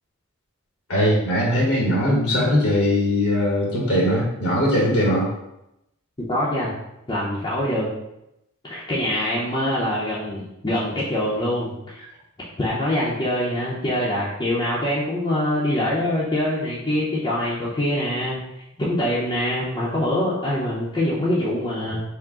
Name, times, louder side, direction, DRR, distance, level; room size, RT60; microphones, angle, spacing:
voice 1, 0.9-5.3, equal, 75° left, -4 dB, 1.2 m, -20 dB
voice 2, 6.2-6.7 7.1-7.9 8.6-12.0 12.6-18.4 18.8-22.0, left 1 dB, 20° left, -8 dB, 0.7 m, -24 dB
4.7 x 2.1 x 3.7 m, 0.85 s
head